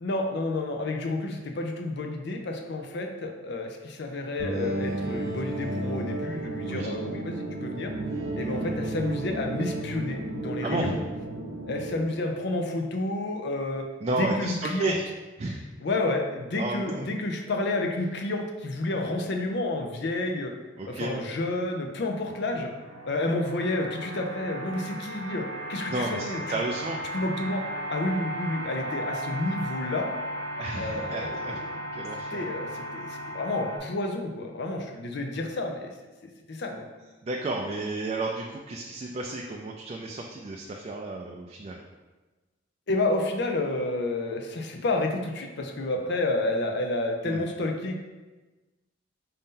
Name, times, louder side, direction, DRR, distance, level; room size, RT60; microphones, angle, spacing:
voice 1, 0.0-7.9 8.4-11.0 11.7-13.8 14.2-15.0 15.8-20.5 20.9-22.7 23.0-26.6 27.1-27.6 27.9-30.1 30.8-31.6 32.3-35.9 36.2-36.9 42.9-48.0, left 2 dB, 60° left, 3 dB, 0.5 m, -30 dB
sound 1, 4.4-12.0, right 2 dB, 90° right, 0.7 m, -33 dB
voice 2, 10.6-11.0 14.0-15.1 15.4-15.7 16.6-17.1 20.8-21.3 25.9-26.2 26.5-27.1 30.6-31.6 31.9-32.4 36.7-36.9 37.2-41.8 47.2-47.5, right 2 dB, 30° right, 0 dB, 0.3 m, -32 dB
sound 2, 21.7-33.8, equal, 85° left, 0.8 m, -36 dB
5.2 x 2.8 x 3.7 m, 1.2 s
head